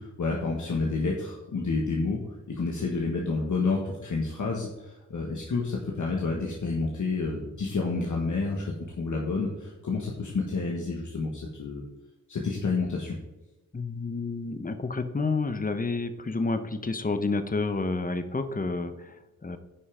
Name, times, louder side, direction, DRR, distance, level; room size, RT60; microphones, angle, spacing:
voice 1, 0.0-2.2 2.5-11.8 12.3-13.2, left 3 dB, 75° left, -1 dB, 1.5 m, -29 dB
voice 2, 13.7-19.6, left 3 dB, 25° left, 9 dB, 0.9 m, -30 dB
10.0 x 5.6 x 5.0 m, 1.0 s
wide cardioid pair, 75°, 31 cm